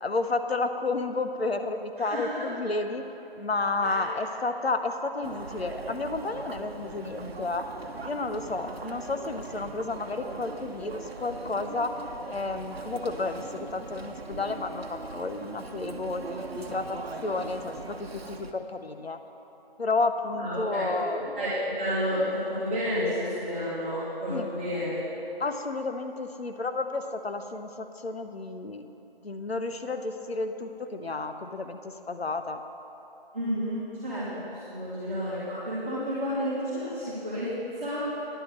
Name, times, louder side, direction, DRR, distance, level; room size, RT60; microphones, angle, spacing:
voice 1, 0.0-3.0 3.4-7.7 8.0-11.9 12.3-19.2 19.8-21.4 24.3-24.5 25.4-28.9 29.2-32.6, left 3 dB, 90° left, 7 dB, 0.9 m, -31 dB
voice 2, 2.0-2.4 3.8-4.0 20.4-20.8 21.3-25.0 33.3-34.3 34.5-37.5 37.7-38.0, equal, 15° right, -15 dB, 2.0 m, -31 dB
Chatter, 5.2-18.5, right 3 dB, 80° right, 0.9 m, -40 dB
10.0 x 7.5 x 6.5 m, 3.0 s
figure-of-eight pair, 170°, 30 cm